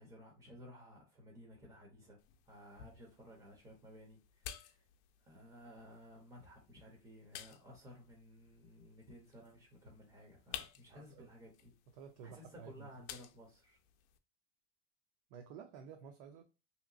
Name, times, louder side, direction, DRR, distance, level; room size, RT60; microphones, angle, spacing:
voice 1, 0.0-2.2 2.5-4.8 5.2-11.7 12.2-13.8, equal, 10° right, 0.5 m, -56 dB
sound 1, 2.2-14.2, left 11 dB, 90° left, 0.5 m, -54 dB
voice 2, 10.9-11.3 11.9-12.9 15.3-16.4, right 6 dB, 60° right, 0.5 m, -52 dB
3.0 x 2.9 x 2.4 m
cardioid pair, 175°, 33 cm